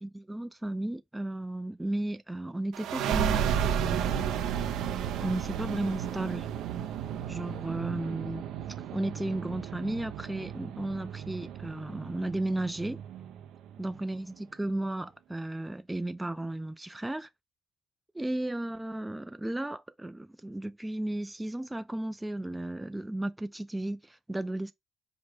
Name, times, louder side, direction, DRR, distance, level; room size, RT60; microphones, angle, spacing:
voice 1, 0.0-4.3 5.2-6.5 7.3-8.4 8.9-13.0 13.8-17.3 18.1-24.7, right 1 dB, 10° right, 0.3 m, -34 dB
sound 1, 2.7-14.0, right 9 dB, 85° right, 0.6 m, -33 dB
5.2 x 2.1 x 4.7 m
cardioid pair, 90°, 0 cm